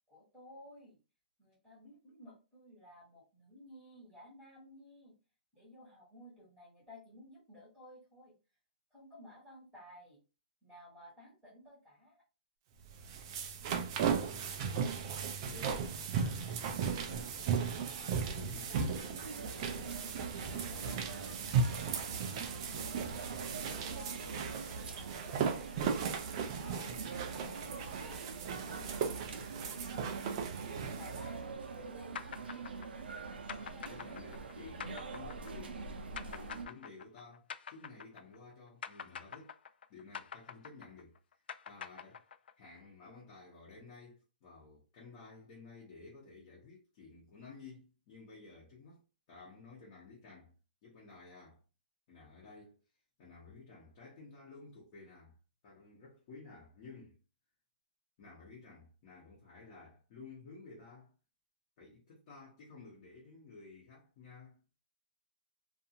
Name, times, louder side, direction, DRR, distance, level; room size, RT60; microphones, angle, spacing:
voice 1, 0.1-1.0 1.4-5.2 5.5-8.3 8.9-10.2 10.6-12.2 18.5-18.9 20.7-23.2 23.7-24.2 24.6-28.2 28.6-30.5 30.8-32.2 33.7-34.0 34.3-34.5, left 1 dB, ahead, 1.2 m, -56 dB
sound 1, 12.9-31.3, right 6 dB, 30° right, 0.3 m, -36 dB
voice 2, 13.7-15.2 15.5-17.6 18.0-19.9 20.2-21.1 33.5-35.8 36.1-39.6 39.9-41.2 41.7-42.2 42.6-49.0 49.3-50.5 50.8-51.6 52.1-52.8 53.2-55.3 55.6-57.2 58.2-61.1 61.8-64.6, left 3 dB, 30° left, 1.0 m, -54 dB
sound 2, 19.2-36.7, right 4 dB, 90° right, 0.6 m, -44 dB
sound 3, 32.2-38.5 38.8-42.7, left 7 dB, 80° left, 0.3 m, -46 dB
2.5 x 2.5 x 2.8 m
hypercardioid pair, 170°, 5 cm